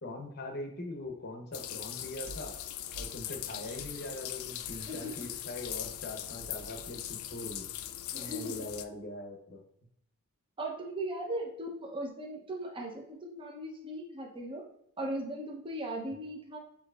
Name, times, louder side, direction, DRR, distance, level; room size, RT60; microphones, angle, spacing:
voice 1, 0.0-2.5 2.9-7.7 8.1-9.6, left 2 dB, 45° left, 3 dB, 0.8 m, -42 dB
sound 1, 1.5-8.8, left 12 dB, 65° left, 0.3 m, -40 dB
sound 2, 2.2-7.9, right 2 dB, 70° right, 0.4 m, -52 dB
voice 2, 4.9-5.2 8.1-8.6 10.6-14.6 15.0-16.6, right 1 dB, 25° right, 0 dB, 0.7 m, -38 dB
6.5 x 2.9 x 2.4 m, 0.75 s
head